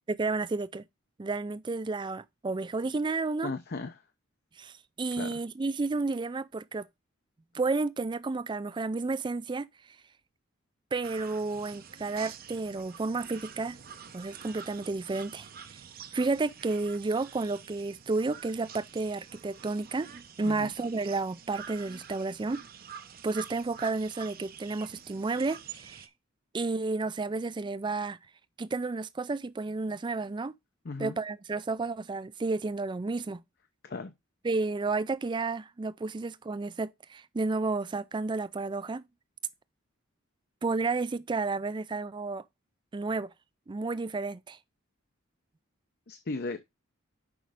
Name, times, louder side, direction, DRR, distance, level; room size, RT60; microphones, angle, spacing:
voice 1, 0.1-0.9 1.2-3.5 4.6-6.9 7.5-9.7 10.9-13.8 14.1-15.5 16.1-22.7 23.2-26.0 26.5-28.2 28.6-30.5 31.0-33.4 34.4-39.0 40.6-42.4 42.9-43.3 43.7-44.6, right 3 dB, 20° right, 0.3 m, -31 dB
voice 2, 3.4-4.0 5.2-5.3 20.4-20.7 30.8-31.2 33.8-34.1 46.1-46.6, left 3 dB, 50° left, 0.6 m, -36 dB
sound 1, 11.0-26.1, right 7 dB, 45° right, 0.7 m, -48 dB
6.1 x 5.2 x 4.9 m
head